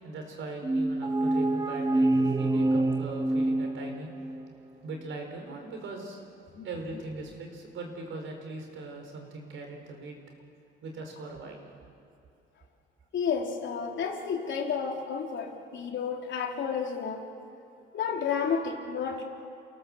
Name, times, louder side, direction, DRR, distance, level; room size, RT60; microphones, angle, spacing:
voice 1, 0.0-6.2 6.6-10.2 10.8-11.7 17.8-17.9, right 3 dB, 75° right, 3 dB, 5.0 m, -40 dB
sound 1, 0.6-4.4, right 2 dB, 20° right, 1.3 m, -26 dB
voice 2, 13.1-17.2 17.9-19.2, left 6 dB, 70° left, 1 dB, 3.4 m, -31 dB
28.5 x 18.0 x 7.6 m, 2.6 s
cardioid pair, 90°, 20 cm